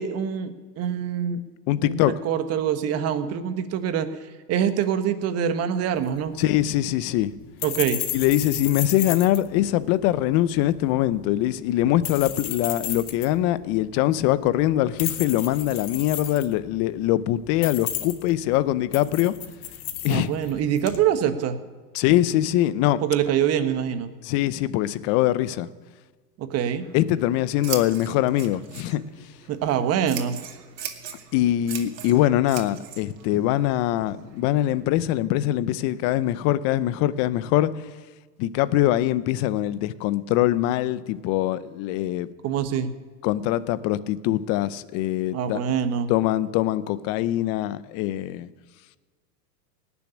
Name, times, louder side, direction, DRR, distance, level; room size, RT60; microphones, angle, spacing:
voice 1, 0.0-1.4 1.8-4.1 4.5-6.3 7.6-8.0 20.1-21.6 23.0-24.1 26.4-26.9 29.5-30.4 42.4-42.9 45.3-46.1, right 9 dB, 30° right, 10 dB, 1.3 m, -25 dB
voice 2, 1.7-2.1 6.4-7.3 8.1-19.3 20.0-20.3 21.9-23.0 24.2-25.7 26.9-29.0 31.3-37.7 38.4-42.3 43.2-45.6 46.1-48.5, left 14 dB, 30° left, 17 dB, 0.6 m, -23 dB
sound 1, 6.0-21.0, left 12 dB, 60° left, 1.9 m, -35 dB
Scissors, 26.7-34.9, right 8 dB, 80° right, 2.4 m, -40 dB
18.0 x 7.1 x 10.0 m, 1.4 s
hypercardioid pair, 130°, 49 cm